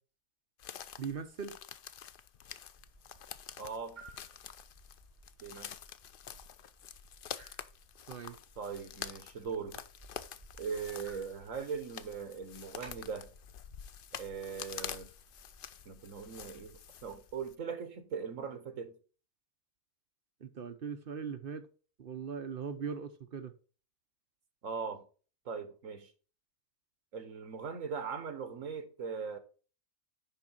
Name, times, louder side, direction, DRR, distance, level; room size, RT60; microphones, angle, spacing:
sound 1, 0.6-17.5, left 9 dB, 60° left, 0.5 m, -48 dB
voice 1, 1.0-1.5 8.1-8.4 20.4-21.6 22.0-23.5, right 6 dB, 50° right, 0.9 m, -40 dB
sound 2, 2.8-16.8, right 2 dB, 30° right, 3.4 m, -59 dB
voice 2, 3.6-4.0 5.4-5.8 8.6-9.8 10.6-13.3 14.1-15.1 15.8-19.0 24.6-25.0 25.4-26.1 27.1-29.4, right 6 dB, 70° right, 1.5 m, -40 dB
10.5 x 3.7 x 4.3 m
omnidirectional pair, 1.4 m